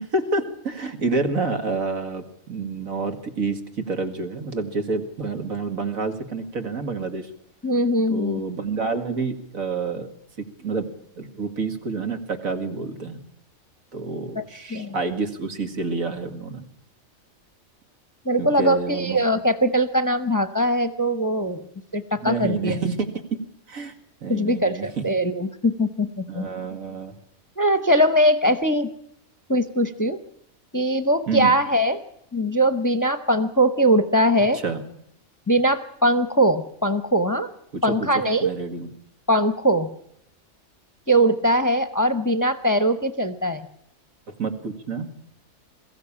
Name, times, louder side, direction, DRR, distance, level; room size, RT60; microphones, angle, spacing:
voice 1, 0.0-7.3 8.1-10.1 10.4-10.9 11.2-13.2 13.9-16.6 18.4-19.2 22.2-23.4 23.7-24.0 24.2-25.0 26.3-27.1 31.3-31.5 34.4-34.8 37.7-38.9 44.3-45.1, right 4 dB, 80° right, 6 dB, 2.6 m, -28 dB
voice 2, 7.6-8.4 14.3-14.4 14.7-15.0 18.2-21.7 21.9-22.8 24.3-26.4 27.6-28.9 29.5-30.2 30.7-32.0 32.3-34.6 35.5-37.5 37.8-38.5 39.3-39.9 41.1-43.7, equal, 15° left, 11 dB, 0.9 m, -21 dB
22.0 x 15.0 x 8.8 m, 0.75 s
omnidirectional pair, 1.4 m